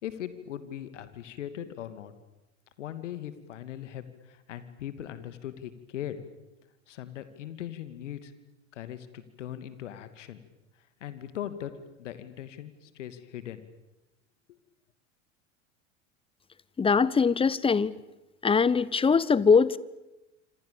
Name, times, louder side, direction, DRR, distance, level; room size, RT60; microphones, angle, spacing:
voice 1, 0.0-2.1 2.8-6.2 6.9-8.3 8.7-10.4 11.0-11.7 12.0-13.7, left 11 dB, 70° left, 12 dB, 2.7 m, -39 dB
voice 2, 16.8-17.9 18.4-19.8, left 5 dB, 15° left, 20 dB, 1.1 m, -22 dB
27.0 x 27.0 x 7.2 m, 1.0 s
figure-of-eight pair, 85°, 38 cm